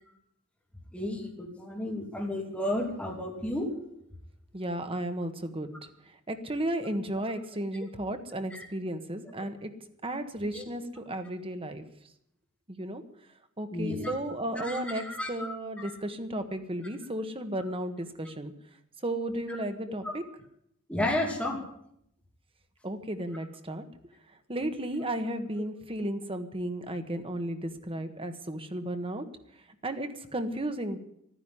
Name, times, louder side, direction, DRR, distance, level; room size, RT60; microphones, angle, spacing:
voice 1, 0.9-3.7 8.5-8.6 9.4-9.5 10.5-10.6 13.7-14.1 14.6-15.5 15.8-15.9 19.5-19.6 20.0-20.1 20.9-21.6, left 1 dB, 5° left, -1 dB, 2.7 m, -32 dB
voice 2, 4.5-5.7 6.3-9.7 10.0-11.8 12.7-13.0 13.6-18.5 19.0-20.2 22.8-23.8 24.5-29.3 29.8-31.0, right 1 dB, 25° right, 8 dB, 1.4 m, -34 dB
13.0 x 10.5 x 9.8 m, 0.75 s
head